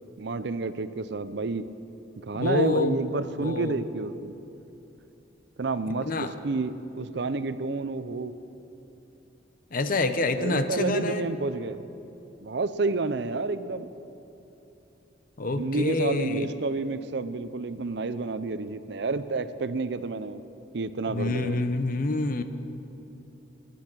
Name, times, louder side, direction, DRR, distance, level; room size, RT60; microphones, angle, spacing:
voice 1, 0.2-1.7 2.2-4.3 5.6-8.3 10.3-11.9 12.4-13.9 15.5-20.4 20.7-21.7, right 3 dB, 65° right, 12 dB, 0.6 m, -30 dB
voice 2, 2.4-3.0 3.4-3.8 6.0-6.4 9.7-11.3 15.4-16.5 21.1-22.4, left 3 dB, 50° left, 9 dB, 0.8 m, -27 dB
23.0 x 10.0 x 6.1 m, 3.0 s
head